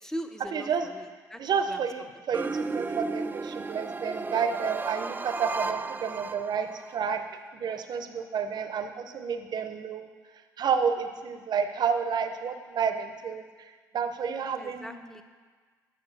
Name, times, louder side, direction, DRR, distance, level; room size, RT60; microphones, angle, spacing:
voice 1, 0.0-1.4 1.7-1.8 14.6-15.2, equal, 5° left, 7 dB, 0.8 m, -40 dB
voice 2, 0.5-0.9 1.4-7.2 7.5-10.1 10.6-15.2, right 6 dB, 50° right, 8 dB, 0.7 m, -30 dB
sound 1, 2.3-7.0, right 4 dB, 20° right, 0.4 m, -34 dB
9.4 x 6.4 x 4.1 m, 1.5 s
hypercardioid pair, 50°, 9 cm